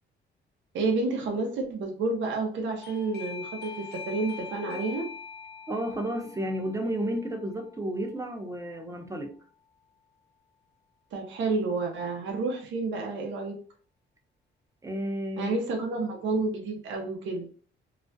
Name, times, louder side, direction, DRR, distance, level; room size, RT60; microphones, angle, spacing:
voice 1, 0.7-5.1 11.1-13.6 15.4-17.5, right 3 dB, 70° right, 1 dB, 0.6 m, -30 dB
Doorbell, 2.8-9.3, left 6 dB, 55° left, 0.5 m, -44 dB
voice 2, 5.7-9.3 14.8-15.5, right 1 dB, 15° right, 5 dB, 0.5 m, -32 dB
2.4 x 2.1 x 2.5 m, 0.43 s
cardioid pair, 90°, 20 cm